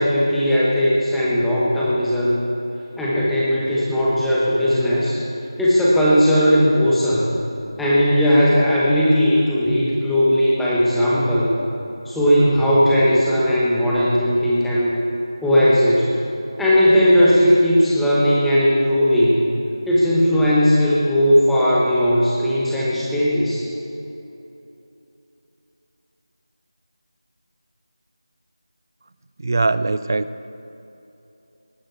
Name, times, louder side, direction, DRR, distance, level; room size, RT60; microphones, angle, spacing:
voice 1, 0.0-2.4 3.0-5.2 5.6-7.3 7.8-11.6 12.0-14.9 15.4-16.1 16.6-19.4 19.9-23.6, equal, ahead, -8 dB, 1.0 m, -17 dB
voice 2, 29.4-30.5, right 3 dB, 40° right, 14 dB, 0.4 m, -21 dB
20.5 x 11.5 x 4.6 m, 2.9 s
figure-of-eight pair, 175°, 3 cm